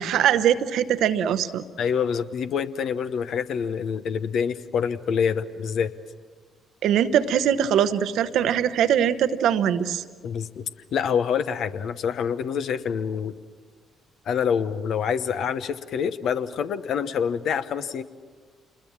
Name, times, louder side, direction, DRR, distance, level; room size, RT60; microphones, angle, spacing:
voice 1, 0.0-1.6 6.8-10.0, right 9 dB, 65° right, 12 dB, 0.9 m, -22 dB
voice 2, 1.8-5.9 10.2-13.3 14.3-18.0, left 7 dB, 60° left, 11 dB, 1.0 m, -26 dB
28.0 x 21.0 x 7.4 m, 1.5 s
hypercardioid pair, 45°, 0 cm